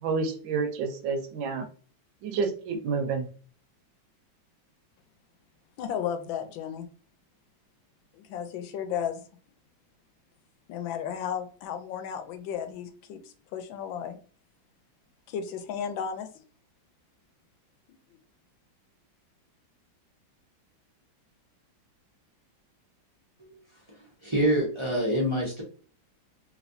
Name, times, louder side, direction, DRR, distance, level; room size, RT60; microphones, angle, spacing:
voice 1, 0.0-1.7 2.2-3.3, right 4 dB, 80° right, 6 dB, 1.4 m, -29 dB
voice 2, 5.8-6.9 8.3-9.2 10.7-13.2 13.5-14.2 15.3-16.3, left 8 dB, 80° left, 8 dB, 1.3 m, -33 dB
voice 3, 24.2-25.6, right 1 dB, 30° right, -4 dB, 0.6 m, -26 dB
3.3 x 3.1 x 2.6 m, 0.41 s
omnidirectional pair, 2.1 m